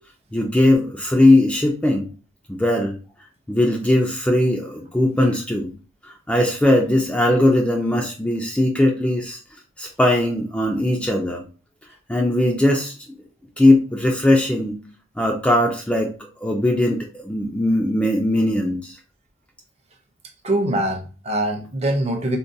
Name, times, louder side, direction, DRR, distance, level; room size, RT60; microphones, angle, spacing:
voice 1, 0.3-2.1 2.5-3.0 3.5-5.7 6.0-9.4 9.8-11.4 12.1-12.9 13.6-14.8 15.2-16.1 16.4-19.0, left 1 dB, 5° left, 0.3 m, -19 dB
voice 2, 20.4-22.4, right 1 dB, 30° right, 0.6 m, -23 dB
3.8 x 2.2 x 2.6 m
head